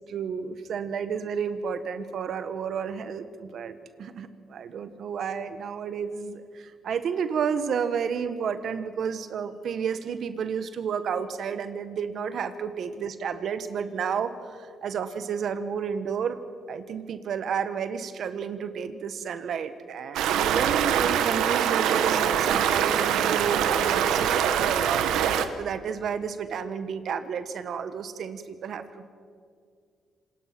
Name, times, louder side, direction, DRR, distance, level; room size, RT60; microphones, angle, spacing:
voice 1, 0.0-16.4 16.7-25.1 25.3-29.1, right 7 dB, 65° right, 11 dB, 1.3 m, -31 dB
Stream, 20.1-25.5, right 9 dB, 90° right, 1.2 m, -24 dB
27.0 x 19.0 x 6.1 m, 2.1 s
cardioid pair, 90°, 0 cm